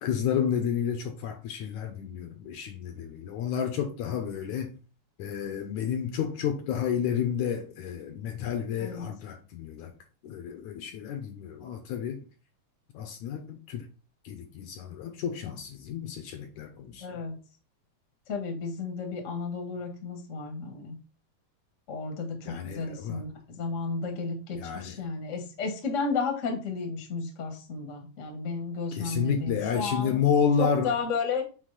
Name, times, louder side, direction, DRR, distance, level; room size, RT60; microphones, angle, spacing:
voice 1, 0.0-4.8 5.2-9.9 10.2-12.2 12.9-13.9 14.3-17.1 22.5-23.2 24.5-25.0 28.9-30.9, left 7 dB, 75° left, 2.0 m, -30 dB
voice 2, 17.0-17.4 18.3-20.9 21.9-30.2 30.6-31.4, left 4 dB, 40° left, 1.0 m, -33 dB
6.5 x 4.1 x 4.0 m
omnidirectional pair, 3.8 m